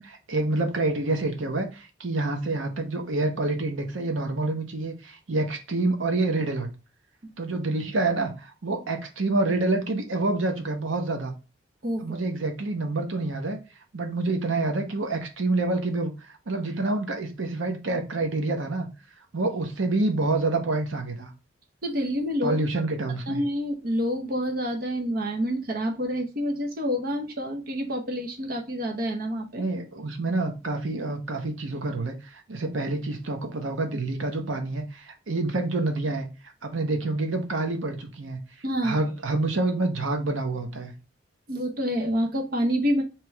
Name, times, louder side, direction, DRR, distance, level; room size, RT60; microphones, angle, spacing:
voice 1, 0.0-6.7 7.4-11.3 12.0-13.6 13.9-18.9 19.3-21.3 22.4-23.4 29.6-36.3 36.6-38.4 38.8-40.9, right 2 dB, 85° right, 5 dB, 0.8 m, -27 dB
voice 2, 11.8-12.2 21.8-22.6 23.3-29.6 38.6-39.0 41.5-43.0, equal, 50° right, 2 dB, 0.7 m, -28 dB
3.2 x 2.9 x 4.4 m, 0.30 s
head